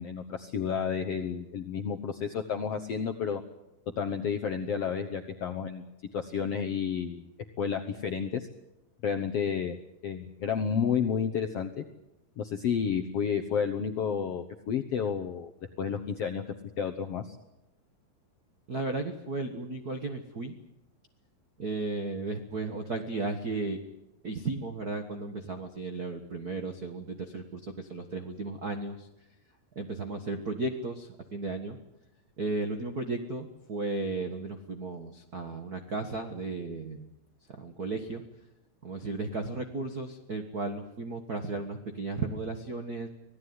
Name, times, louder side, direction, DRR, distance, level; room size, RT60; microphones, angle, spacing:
voice 1, 0.0-3.4 4.0-5.8 6.1-7.2 7.6-8.5 9.0-9.8 10.0-11.8 12.4-15.5 15.8-16.4 16.8-17.4, left 7 dB, 65° left, 6 dB, 1.5 m, -31 dB
voice 2, 18.7-20.6 21.6-23.8 24.2-29.1 29.7-31.8 32.4-37.1 37.6-38.2 38.8-43.1, right 3 dB, 55° right, 6 dB, 1.0 m, -34 dB
25.5 x 17.5 x 9.6 m, 0.90 s
omnidirectional pair, 4.2 m